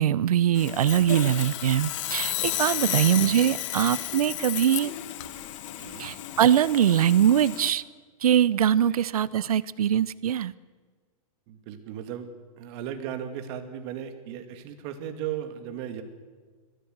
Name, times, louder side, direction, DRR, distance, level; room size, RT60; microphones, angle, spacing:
voice 1, 0.0-4.9 6.0-7.8 8.2-10.5, right 10 dB, 85° right, 20 dB, 0.6 m, -22 dB
Sawing, 0.5-7.7, left 13 dB, 55° left, 1.6 m, -33 dB
voice 2, 5.7-6.1 8.9-9.0 11.5-12.3 12.6-16.0, right 9 dB, 45° right, 7 dB, 2.5 m, -36 dB
22.0 x 15.5 x 8.0 m, 1.5 s
hypercardioid pair, 130°, 18 cm